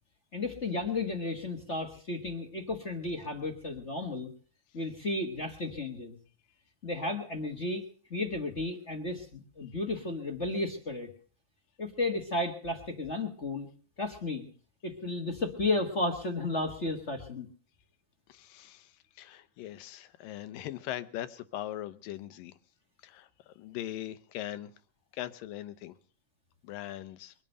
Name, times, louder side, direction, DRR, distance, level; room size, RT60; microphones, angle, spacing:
voice 1, 0.3-4.3 4.7-6.2 6.8-7.8 8.1-11.1 11.8-13.7 14.0-14.5 14.8-17.5, left 2 dB, 45° left, 0.9 m, -33 dB
voice 2, 18.3-22.6 23.0-24.7 25.1-26.0 26.6-27.3, left 13 dB, 85° left, 2.6 m, -40 dB
23.0 x 9.1 x 6.6 m
omnidirectional pair, 3.9 m